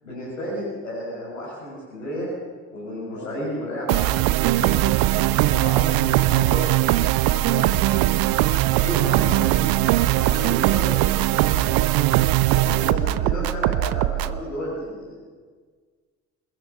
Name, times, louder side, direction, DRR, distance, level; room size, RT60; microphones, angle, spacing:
voice 1, 0.0-2.3 2.7-4.3 5.1-6.7 8.7-11.8 12.8-15.3, equal, 90° left, -9 dB, 7.2 m, -32 dB
sound 1, 3.9-14.4, right 16 dB, 65° right, 0.9 m, -20 dB
voice 2, 4.6-5.1 7.3-9.3 10.2-10.7 12.5-13.0, left 5 dB, 55° left, 8 dB, 3.4 m, -38 dB
27.5 x 21.0 x 7.2 m, 1.5 s
hypercardioid pair, 50°, 39 cm